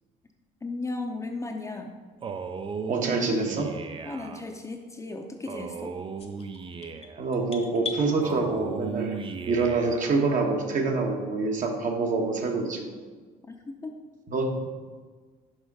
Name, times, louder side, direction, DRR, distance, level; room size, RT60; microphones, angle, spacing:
voice 1, 0.6-1.9 4.0-5.9 13.5-13.6 13.8-13.9, left 3 dB, 15° left, 3 dB, 0.7 m, -35 dB
Male speech man speaking, 2.2-4.4 5.5-7.3 8.2-10.2, right 5 dB, 30° right, 0.5 m, -36 dB
voice 2, 2.9-3.7 7.2-9.2 9.5-12.9 14.3-14.7, right 3 dB, 50° right, 2 dB, 1.2 m, -26 dB
sound 1, 6.2-8.1, left 4 dB, 35° left, 1.0 m, -38 dB
6.4 x 5.0 x 4.8 m, 1.4 s
cardioid pair, 110°, 17 cm